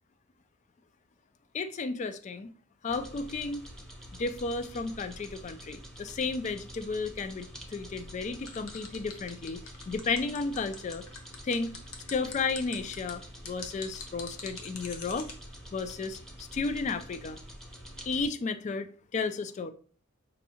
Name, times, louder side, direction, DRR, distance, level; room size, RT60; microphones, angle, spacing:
voice 1, 1.5-2.5 2.8-3.7 4.2-9.6 9.9-11.0 11.4-11.7 12.1-15.3 15.7-17.4 18.1-18.9 19.1-19.7, left 4 dB, 35° left, 10 dB, 0.3 m, -33 dB
sound 1, 2.9-18.3, equal, 5° left, 0.7 m, -47 dB
sound 2, 8.4-15.3, left 5 dB, 80° left, 0.8 m, -43 dB
5.2 x 2.7 x 2.7 m, 0.43 s
head